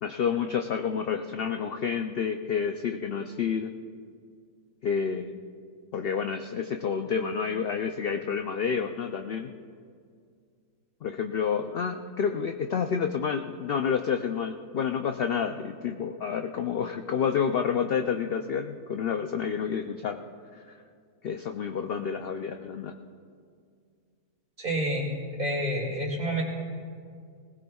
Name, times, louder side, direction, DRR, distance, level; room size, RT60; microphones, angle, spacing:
voice 1, 0.0-3.7 4.8-5.4 5.9-9.5 11.0-20.2 21.2-22.9, left 6 dB, 75° left, 5 dB, 0.5 m, -29 dB
voice 2, 24.6-25.1 25.4-26.4, right 1 dB, 35° right, -1 dB, 2.4 m, -28 dB
20.0 x 18.5 x 2.3 m, 2.2 s
omnidirectional pair, 1.6 m